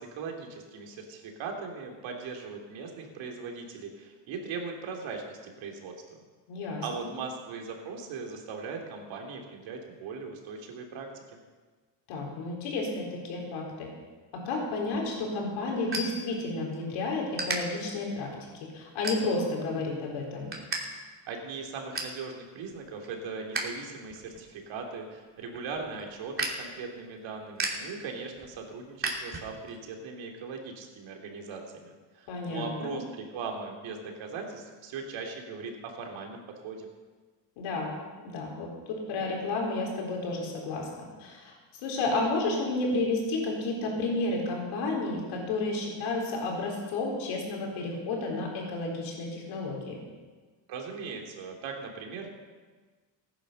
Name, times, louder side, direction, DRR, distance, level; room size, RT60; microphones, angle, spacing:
voice 1, 0.0-6.2 6.8-11.1 21.3-36.9 50.7-52.3, right 4 dB, 75° right, 2 dB, 3.1 m, -39 dB
voice 2, 6.5-7.1 12.1-13.9 14.3-18.5 18.7-20.5 32.3-32.9 37.6-37.9 38.2-40.9 41.2-41.5 41.8-50.0, left 2 dB, 85° left, -1 dB, 4.4 m, -31 dB
sound 1, 14.8-16.8 17.3-17.6 18.1-18.4 19.0-19.6 20.0-20.8 21.1-21.2 21.6-22.2 22.7-23.7 24.0-29.8, right 2 dB, 25° right, 3.0 m, -36 dB
16.0 x 10.0 x 6.4 m, 1.4 s
cardioid pair, 100°, 46 cm